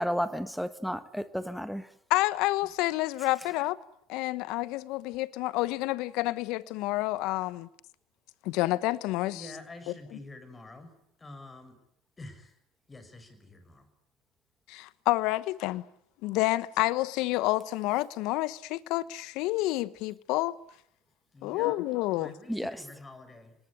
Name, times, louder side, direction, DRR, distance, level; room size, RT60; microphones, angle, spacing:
voice 1, 0.0-1.8 22.5-22.7, equal, ahead, 1.5 m, -32 dB
voice 2, 2.1-3.8 4.1-7.7 8.4-9.4 14.7-15.8 16.2-20.5 21.4-22.3, left 18 dB, 65° left, 1.1 m, -29 dB
voice 3, 9.2-11.8 12.2-12.6 12.9-13.9 21.3-21.8 22.1-23.6, left 2 dB, 20° left, 6.4 m, -47 dB
25.5 x 19.5 x 9.7 m
hypercardioid pair, 80°, 0 cm